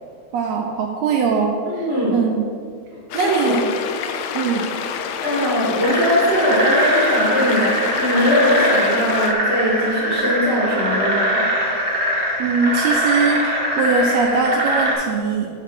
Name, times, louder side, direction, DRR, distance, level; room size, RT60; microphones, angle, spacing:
voice 1, 0.3-2.5 3.1-3.7 4.3-4.7 12.4-15.5, right 4 dB, 75° right, 2 dB, 1.7 m, -21 dB
voice 2, 1.7-2.2 3.1-3.6 5.2-11.4, equal, 30° left, -6 dB, 1.3 m, -20 dB
sound 1, 3.1-9.3, left 7 dB, 75° left, 1.7 m, -28 dB
sound 2, 5.8-14.9, right 1 dB, 40° right, 0.9 m, -22 dB
11.0 x 4.1 x 5.3 m, 2.3 s
omnidirectional pair, 3.5 m